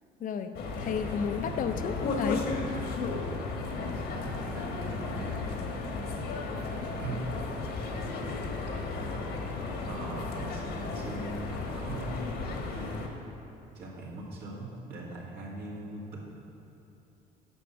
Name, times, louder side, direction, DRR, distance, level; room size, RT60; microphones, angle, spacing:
voice 1, 0.2-0.5 0.8-2.5, left 6 dB, 55° left, 8 dB, 0.6 m, -32 dB
sound 1, 0.5-13.1, left 3 dB, 70° left, 1.4 m, -34 dB
voice 2, 3.6-5.5 6.8-7.3 8.8-8.9 9.9-11.4 11.8-13.0 13.7-16.2, right 2 dB, 70° right, -4 dB, 2.2 m, -41 dB
9.2 x 5.9 x 6.1 m, 2.9 s
cardioid pair, 110°, 17 cm